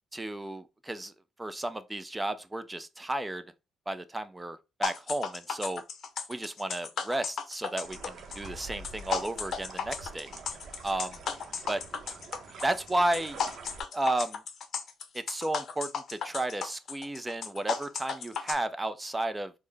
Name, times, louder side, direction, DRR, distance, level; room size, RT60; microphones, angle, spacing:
voice 1, 0.1-1.1 1.4-3.4 3.9-5.8 6.3-10.3 10.8-11.2 11.7-11.8 12.6-13.4 13.9-14.4 15.1-19.5, right 1 dB, 15° right, 0.4 m, -33 dB
sound 1, 4.8-18.5, left 6 dB, 60° left, 0.6 m, -35 dB
sound 2, 7.8-13.8, right 4 dB, 60° right, 0.7 m, -46 dB
3.7 x 2.1 x 3.3 m
cardioid pair, 90°, 0 cm